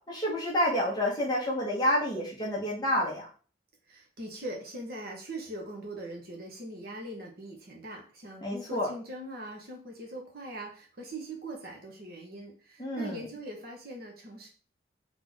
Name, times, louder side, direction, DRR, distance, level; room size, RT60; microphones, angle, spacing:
voice 1, 0.1-3.3 8.4-8.9 12.8-13.2, equal, 20° left, -4 dB, 1.5 m, -29 dB
voice 2, 3.9-14.5, right 1 dB, 55° right, 0 dB, 1.2 m, -41 dB
3.9 x 3.5 x 3.6 m, 0.39 s
head